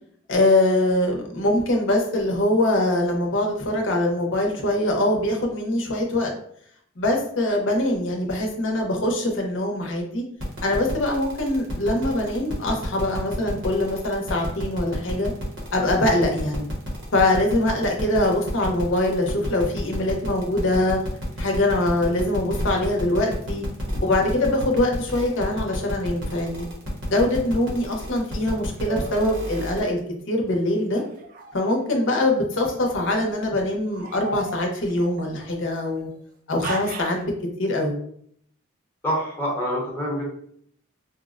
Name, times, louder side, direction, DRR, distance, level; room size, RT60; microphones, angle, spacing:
voice 1, 0.3-6.3 7.0-10.2 10.6-15.3 15.7-16.6 17.1-21.0 21.4-23.6 24.0-26.7 27.1-30.0 30.3-31.0 31.5-36.1 36.5-37.3 37.6-38.0, left 1 dB, 65° left, 1 dB, 0.7 m, -23 dB
sound 1, 10.4-29.9, left 1 dB, 65° right, 1.0 m, -33 dB
sound 2, 28.9-29.4 30.9-32.1 32.9-33.3 33.9-36.0 36.6-37.2, right 2 dB, 45° right, 0.4 m, -36 dB
voice 2, 39.0-40.2, equal, 10° left, -4 dB, 0.8 m, -26 dB
4.1 x 2.1 x 2.4 m, 0.64 s
head